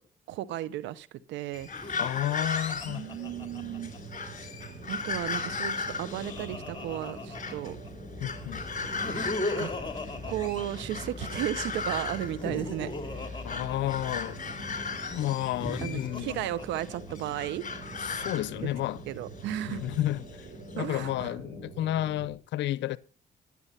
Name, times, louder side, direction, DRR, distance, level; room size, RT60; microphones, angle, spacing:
voice 1, 0.3-1.7 2.9-3.9 4.9-7.8 9.0-9.2 9.6-9.7 10.2-12.9 13.2-13.4 15.8-17.6 18.6-18.7 19.1-19.8 20.8-21.3, right 13 dB, 90° right, 0.9 m, -34 dB
sound 1, 1.5-21.1, left 4 dB, 45° left, 3.3 m, -38 dB
Laughter, 1.7-4.2 5.5-7.9 8.8-11.3 12.1-14.5 15.4-17.3, left 2 dB, 25° left, 3.0 m, -38 dB
voice 2, 2.0-3.2 8.2-8.7 13.4-14.4 15.1-16.5 18.0-19.0 19.7-20.5 20.7-23.0, left 14 dB, 85° left, 0.6 m, -31 dB
sound 2, 2.7-22.3, right 3 dB, 50° right, 7.0 m, -45 dB
12.0 x 9.6 x 5.7 m
supercardioid pair, 65°, 18 cm